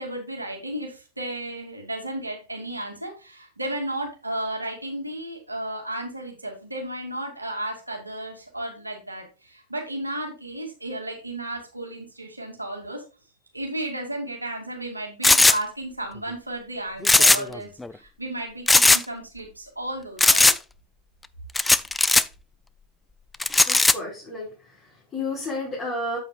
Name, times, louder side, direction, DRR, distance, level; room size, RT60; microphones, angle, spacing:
voice 1, 0.0-13.0 13.5-20.5, right 1 dB, 85° right, 1 dB, 2.5 m, -33 dB
sound 1, 15.2-15.6 17.0-17.6 17.8-17.9 18.7-19.0 20.2-20.6 21.6-22.2 23.4-23.9, left 2 dB, 10° left, 0.4 m, -17 dB
voice 2, 23.6-26.2, left 2 dB, 25° left, -7 dB, 4.8 m, -32 dB
8.8 x 8.5 x 2.4 m, 0.32 s
figure-of-eight pair, 90°, 0 cm